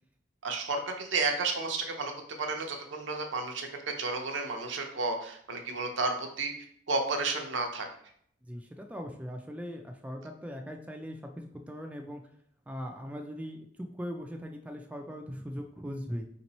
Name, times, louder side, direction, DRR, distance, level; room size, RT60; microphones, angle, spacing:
voice 1, 0.4-2.1 2.4-6.5 6.9-7.9, right 3 dB, 80° right, 3 dB, 0.7 m, -32 dB
voice 2, 8.5-12.2 12.7-16.3, equal, 5° right, 3 dB, 0.3 m, -40 dB
3.7 x 2.9 x 4.1 m, 0.65 s
head